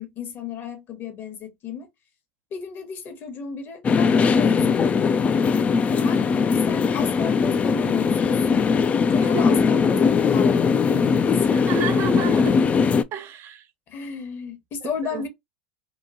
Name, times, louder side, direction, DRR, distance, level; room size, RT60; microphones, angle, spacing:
voice 1, 0.0-1.9 2.5-4.9 6.0-8.7 9.1-11.6 13.9-15.3, left 6 dB, 40° left, 0.9 m, -34 dB
sound 1, 3.8-13.0, left 5 dB, 25° left, 0.3 m, -20 dB
voice 2, 9.2-9.6 11.5-12.5 13.1-13.7 14.8-15.3, right 9 dB, 45° right, 0.4 m, -31 dB
2.9 x 2.2 x 2.4 m
hypercardioid pair, 95°, 6 cm